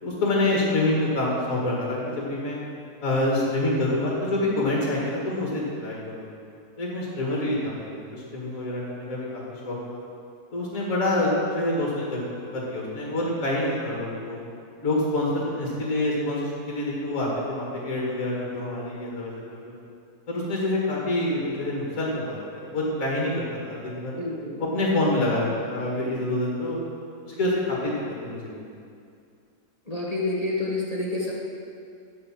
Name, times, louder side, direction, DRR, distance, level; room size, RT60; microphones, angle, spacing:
voice 1, 0.0-2.6 3.0-6.4 6.8-10.0 10.5-14.4 14.8-19.3 19.7-19.8 20.3-24.2 24.6-26.8 27.2-27.9 28.2-28.7, left 1 dB, 55° left, -4 dB, 2.3 m, -27 dB
voice 2, 24.1-24.6 29.9-31.3, left 2 dB, 25° left, -4 dB, 1.1 m, -28 dB
13.0 x 4.8 x 7.5 m, 2.4 s
omnidirectional pair, 1.7 m